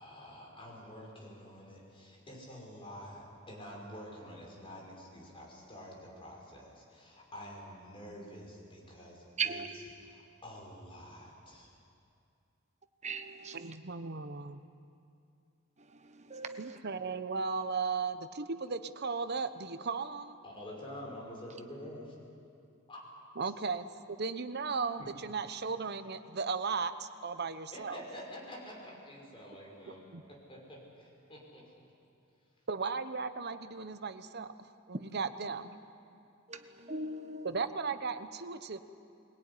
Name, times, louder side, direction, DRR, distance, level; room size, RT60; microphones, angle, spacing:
voice 1, 0.0-11.7 20.4-22.2 22.9-23.0 25.0-25.1 27.7-31.8, equal, 25° left, -2 dB, 5.4 m, -48 dB
voice 2, 13.0-13.6 16.3-16.8 34.9-35.1 36.5-37.6, right 4 dB, 35° right, 8 dB, 1.2 m, -38 dB
voice 3, 13.5-14.6 16.6-20.4 23.4-28.0 30.1-30.2 32.7-35.7 37.4-38.8, right 4 dB, 55° right, 11 dB, 0.9 m, -36 dB
21.5 x 17.5 x 9.8 m, 2.5 s
head